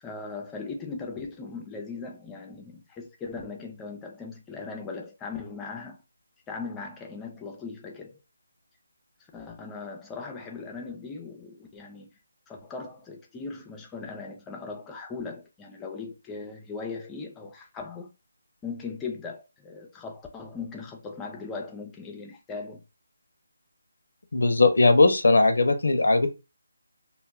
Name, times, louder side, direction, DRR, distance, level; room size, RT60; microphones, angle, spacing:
voice 1, 0.0-6.0 6.5-8.2 9.3-12.1 12.5-18.1 18.6-22.8, left 4 dB, 10° left, 0.4 m, -39 dB
voice 2, 24.3-26.3, left 3 dB, 75° left, 0.5 m, -19 dB
2.1 x 2.0 x 3.4 m
figure-of-eight pair, 160°, 0 cm